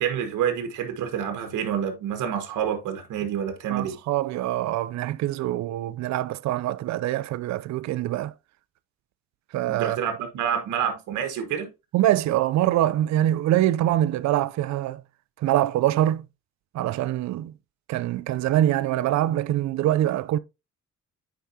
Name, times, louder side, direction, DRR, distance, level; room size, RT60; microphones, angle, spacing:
voice 1, 0.0-4.0 9.7-11.7, right 8 dB, 85° right, 1.4 m, -28 dB
voice 2, 3.7-8.3 9.5-10.0 11.9-15.0 15.4-16.2 16.7-17.5 17.9-20.4, right 13 dB, 65° right, 0.5 m, -24 dB
9.3 x 4.8 x 2.7 m
cardioid pair, 90°, 30 cm